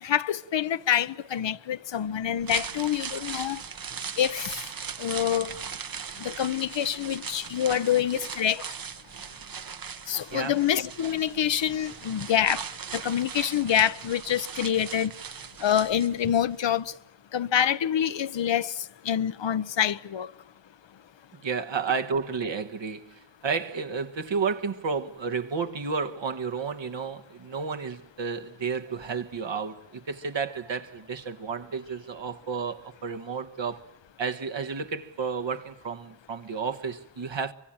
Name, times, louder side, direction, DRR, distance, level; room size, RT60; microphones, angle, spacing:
voice 1, 0.0-3.6 4.2-4.6 5.0-5.5 6.2-8.6 10.1-12.6 12.9-15.1 15.6-16.9 17.3-18.7 19.0-20.3, left 10 dB, 75° left, 0.9 m, -26 dB
sound 1, 2.2-16.5 16.8-16.9, right 7 dB, 50° right, 0.9 m, -39 dB
voice 2, 21.3-33.9 34.2-37.5, right 5 dB, 75° right, 1.5 m, -32 dB
24.0 x 24.0 x 8.7 m
cardioid pair, 50°, 45 cm